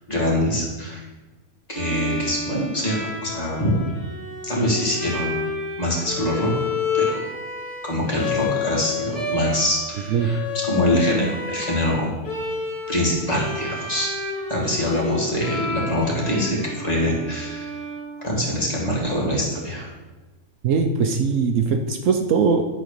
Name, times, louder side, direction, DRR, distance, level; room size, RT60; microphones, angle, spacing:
voice 1, 0.1-1.0 1.7-3.8 4.4-5.4 5.8-6.5 6.9-7.2 7.8-12.1 12.9-14.1 14.5-17.7 18.2-19.9, left 1 dB, 25° left, -4 dB, 2.2 m, -24 dB
Bowed string instrument, 1.7-18.6, left 3 dB, 50° left, 2.3 m, -30 dB
voice 2, 20.6-22.6, right 5 dB, 65° right, 5 dB, 1.0 m, -20 dB
11.5 x 4.0 x 6.5 m, 1.2 s
omnidirectional pair, 1.5 m